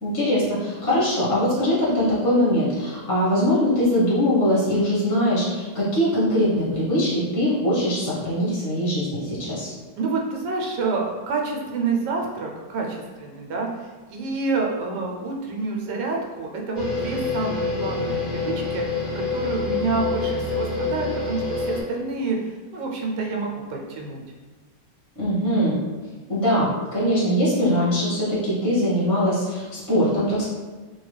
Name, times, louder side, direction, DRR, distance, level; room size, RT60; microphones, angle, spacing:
voice 1, 0.0-9.7 25.1-25.8 26.3-30.4, equal, 15° left, -10 dB, 0.6 m, -22 dB
voice 2, 10.0-24.2, right 3 dB, 80° right, 0 dB, 1.2 m, -28 dB
sound 1, 16.8-21.8, left 3 dB, 70° left, 0.4 m, -27 dB
3.0 x 2.2 x 3.1 m, 1.3 s
omnidirectional pair, 1.9 m